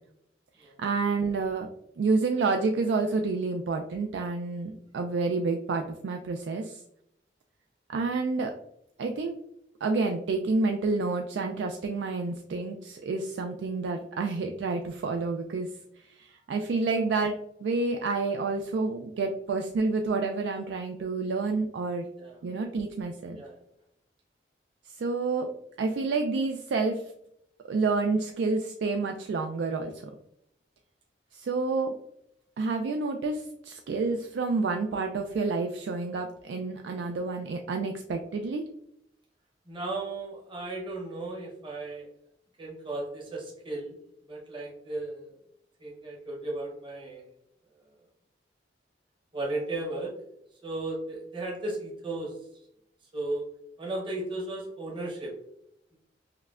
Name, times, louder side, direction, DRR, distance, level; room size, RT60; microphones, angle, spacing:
voice 1, 0.6-1.7 2.0-6.8 7.9-8.5 9.0-9.4 9.8-15.7 16.0-22.1 22.4-23.4 24.9-25.5 25.8-27.0 27.6-30.1 31.3-31.9 32.6-38.6, right 3 dB, 80° right, 4 dB, 0.3 m, -29 dB
voice 2, 39.7-42.1 42.6-44.0 44.3-45.3 45.8-47.2 49.3-50.1 50.6-52.4 53.1-53.4 53.8-55.3, right 2 dB, 25° right, -3 dB, 0.8 m, -35 dB
5.7 x 2.1 x 2.3 m, 0.75 s
head